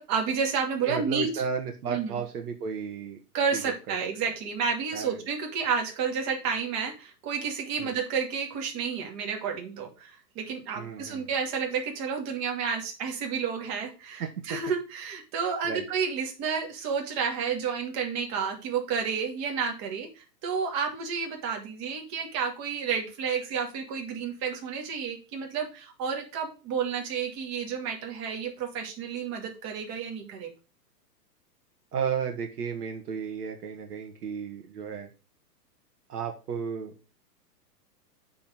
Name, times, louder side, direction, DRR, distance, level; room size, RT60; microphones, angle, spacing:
voice 1, 0.0-1.3 1.9-2.2 3.3-30.5, right 6 dB, 35° right, 2 dB, 2.5 m, -31 dB
voice 2, 0.8-3.2 3.5-4.0 4.9-5.2 7.8-8.0 10.8-11.3 14.2-14.6 15.6-15.9 31.9-35.1 36.1-37.1, right 6 dB, 70° right, 4 dB, 1.8 m, -33 dB
8.4 x 4.0 x 6.4 m, 0.32 s
hypercardioid pair, 135°, 49 cm